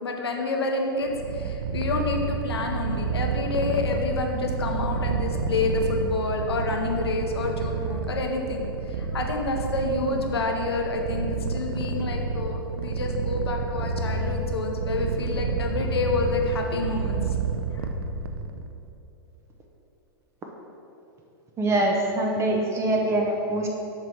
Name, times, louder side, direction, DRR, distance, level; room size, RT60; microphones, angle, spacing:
voice 1, 0.0-17.3 17.7-17.9, left 3 dB, 90° left, 2 dB, 0.7 m, -28 dB
Purr, 1.0-18.7, right 4 dB, 75° right, 0.5 m, -29 dB
voice 2, 21.6-23.7, right 1 dB, 20° right, 0 dB, 0.6 m, -24 dB
7.3 x 3.1 x 5.3 m, 2.9 s
hypercardioid pair, 115°, 13 cm